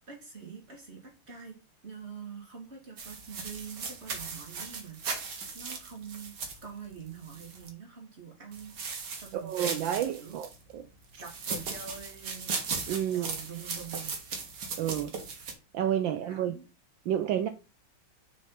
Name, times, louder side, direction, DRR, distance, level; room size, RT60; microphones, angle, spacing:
voice 1, 0.0-1.6 1.8-6.3 6.6-10.4 11.2-12.5 12.9-14.2 16.0-16.7, right 6 dB, 30° right, 2.6 m, -45 dB
sound 1, 3.0-7.7 8.5-10.6 11.2-15.5, right 5 dB, 55° right, 1.9 m, -38 dB
voice 2, 9.3-10.8 11.1-11.2 12.9-13.3 14.8-15.1 15.7-16.5 17.1-17.5, right 10 dB, 75° right, 1.2 m, -30 dB
6.2 x 4.4 x 5.6 m
omnidirectional pair, 2.4 m